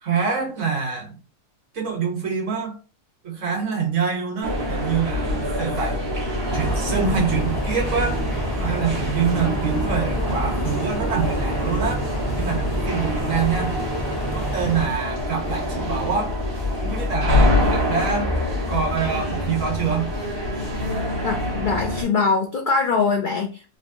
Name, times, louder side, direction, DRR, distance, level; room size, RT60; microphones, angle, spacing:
voice 1, 0.0-1.2 1.7-2.8 3.2-6.0 6.5-8.2 8.6-12.1 12.4-13.7 14.3-16.3 16.8-18.3 18.7-20.1, right 6 dB, 65° right, 1.3 m, -25 dB
sound 1, 4.4-22.0, left 1 dB, 20° right, 1.1 m, -25 dB
sound 2, 6.5-14.9, right 1 dB, 35° left, 1.5 m, -29 dB
voice 2, 21.2-23.8, left 4 dB, 70° left, 0.4 m, -22 dB
3.2 x 2.7 x 2.7 m
omnidirectional pair, 1.4 m